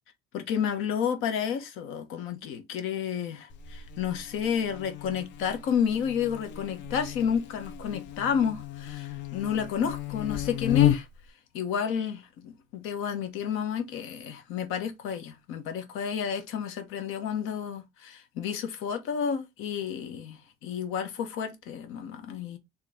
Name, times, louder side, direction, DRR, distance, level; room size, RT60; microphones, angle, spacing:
voice 1, 0.3-11.1 11.5-22.6, left 7 dB, 85° left, 1.2 m, -31 dB
Buzz, 3.5-11.3, left 15 dB, 65° left, 0.6 m, -33 dB
4.4 x 3.2 x 3.7 m
cardioid pair, 150°, 20 cm